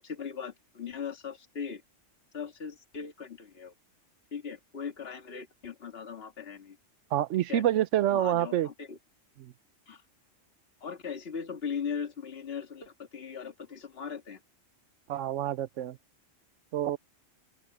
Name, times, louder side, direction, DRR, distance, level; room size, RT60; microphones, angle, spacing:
voice 1, 0.0-1.8 2.3-3.7 4.3-6.8 7.4-7.6 8.1-9.0 9.9-10.0 10.8-14.4, left 6 dB, 50° left, 2.2 m, -39 dB
voice 2, 7.1-8.7 9.4-9.5 15.1-16.0 16.7-17.0, right 12 dB, 75° right, 0.9 m, -27 dB
open air
omnidirectional pair, 1.3 m